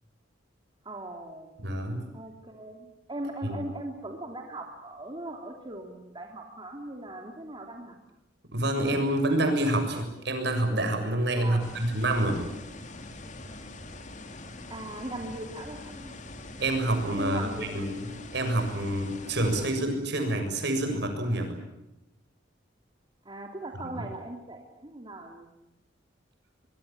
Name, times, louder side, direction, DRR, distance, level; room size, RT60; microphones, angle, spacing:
voice 1, 0.8-1.5 2.1-8.0 11.4-11.8 14.7-16.1 17.2-17.8 23.2-25.5, right 1 dB, 25° right, 2 dB, 2.9 m, -39 dB
voice 2, 1.6-2.0 3.4-3.6 8.5-12.4 16.6-18.0 18.3-21.6, right 1 dB, 65° right, 5 dB, 7.0 m, -27 dB
sound 1, 11.6-19.7, left 2 dB, 40° left, 2.7 m, -43 dB
24.5 x 23.0 x 8.9 m, 0.88 s
head